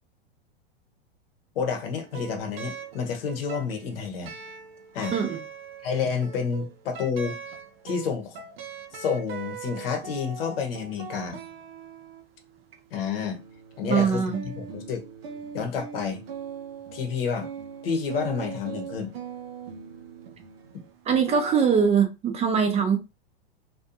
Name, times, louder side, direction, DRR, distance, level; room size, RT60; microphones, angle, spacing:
voice 1, 1.5-4.3 4.9-5.1 5.8-7.4 7.8-8.4 8.9-11.4 12.9-13.4 13.8-15.1 15.5-16.2 16.9-17.5 17.8-19.1, left 6 dB, 70° left, 0.9 m, -29 dB
sound 1, 1.9-21.9, right 7 dB, 75° right, 0.7 m, -41 dB
voice 2, 5.1-5.4 13.8-14.4 21.1-23.0, right 6 dB, 20° right, 0.4 m, -22 dB
2.5 x 2.3 x 2.6 m
hypercardioid pair, 110°, 30 cm